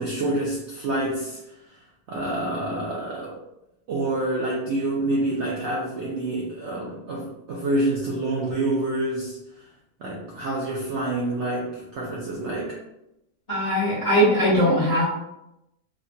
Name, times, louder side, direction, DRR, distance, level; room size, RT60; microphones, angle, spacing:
voice 1, 0.0-1.6 2.1-3.4 3.9-9.7 10.0-12.8, right 2 dB, 85° right, -3 dB, 0.6 m, -27 dB
voice 2, 13.5-15.0, equal, 40° left, -9 dB, 1.3 m, -20 dB
3.1 x 2.1 x 2.6 m, 0.87 s
omnidirectional pair, 1.7 m